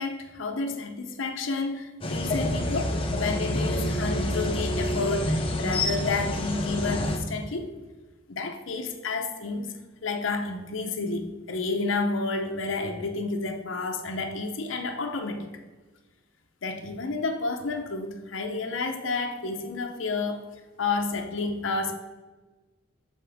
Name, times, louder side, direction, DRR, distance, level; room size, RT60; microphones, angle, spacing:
voice 1, 0.0-7.7 8.3-9.7 10.0-15.5 16.6-20.5 20.8-21.9, left 3 dB, 85° left, 4 dB, 0.7 m, -30 dB
sound 1, 2.0-7.2, left 1 dB, 30° left, 0.7 m, -27 dB
7.2 x 4.3 x 3.5 m, 1.3 s
head